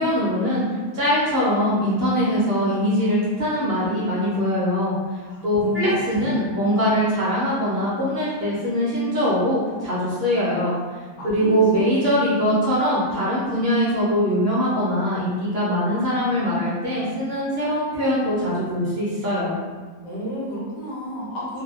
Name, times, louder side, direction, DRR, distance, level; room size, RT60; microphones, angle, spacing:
voice 1, 0.0-10.8 11.2-19.5, equal, 55° right, -8 dB, 0.8 m, -22 dB
voice 2, 5.3-6.3 11.2-12.2 20.0-21.6, left 1 dB, 75° left, -6 dB, 1.3 m, -32 dB
3.3 x 2.1 x 2.3 m, 1.4 s
omnidirectional pair, 1.5 m